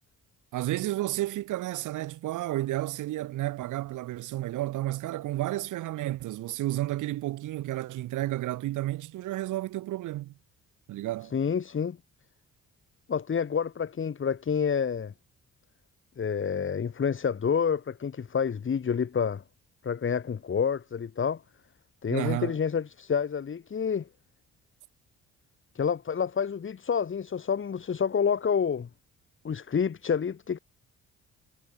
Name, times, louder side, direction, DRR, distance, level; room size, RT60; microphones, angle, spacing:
voice 1, 0.5-10.3 10.9-11.3 22.1-22.6, right 15 dB, 85° right, 2.8 m, -31 dB
voice 2, 11.3-12.0 13.1-15.1 16.2-19.4 19.8-21.4 22.0-24.1 25.7-28.9 29.4-30.6, left 6 dB, 40° left, 2.8 m, -28 dB
cardioid pair, 90°, 30 cm